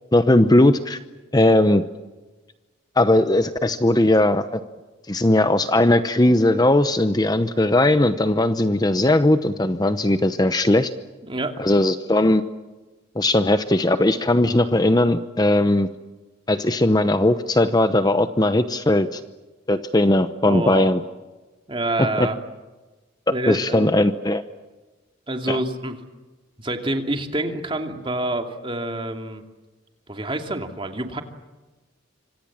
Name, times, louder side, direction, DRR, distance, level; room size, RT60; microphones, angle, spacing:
voice 1, 0.1-1.0 1.3-1.8 3.0-4.6 5.1-10.9 11.6-12.4 13.2-15.9 16.5-19.2 19.7-21.0 22.0-22.3 23.5-24.4 25.5-25.6, left 1 dB, 20° left, 10 dB, 0.8 m, -18 dB
voice 2, 11.2-11.7 20.5-20.9 21.7-22.4 23.3-23.9 25.3-26.0 26.6-29.4 30.1-31.2, right 1 dB, 25° right, 5 dB, 2.6 m, -27 dB
26.5 x 26.0 x 7.4 m, 1.2 s
head